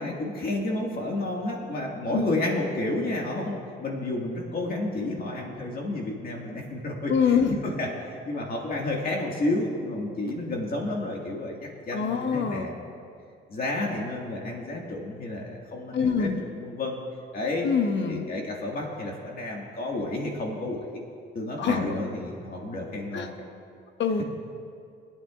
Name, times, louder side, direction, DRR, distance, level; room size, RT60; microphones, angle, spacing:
voice 1, 0.0-12.9 13.5-17.0 17.3-17.7 18.1-21.0 21.3-23.3, left 2 dB, 50° left, -1 dB, 1.9 m, -31 dB
voice 2, 7.1-7.6 11.9-12.7 15.9-16.4 17.6-18.2 21.6-22.0 23.1-23.3 24.0-24.2, left 6 dB, 65° left, 6 dB, 1.0 m, -24 dB
25.5 x 8.8 x 2.5 m, 2.4 s
cardioid pair, 90°, 20 cm